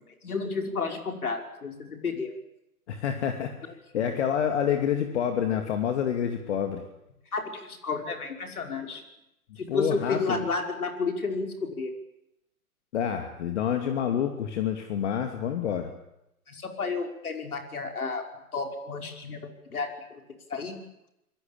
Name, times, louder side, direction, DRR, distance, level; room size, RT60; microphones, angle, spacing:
voice 1, 0.2-2.3 3.9-4.1 7.3-9.0 9.6-11.9 16.5-18.2 18.5-20.2 20.5-20.7, left 4 dB, 70° left, 4 dB, 5.5 m, -31 dB
voice 2, 2.9-3.5 3.9-6.8 9.7-10.4 12.9-15.9, left 8 dB, 45° left, 5 dB, 2.7 m, -28 dB
26.0 x 21.5 x 8.9 m, 0.86 s
figure-of-eight pair, 125°, 45 cm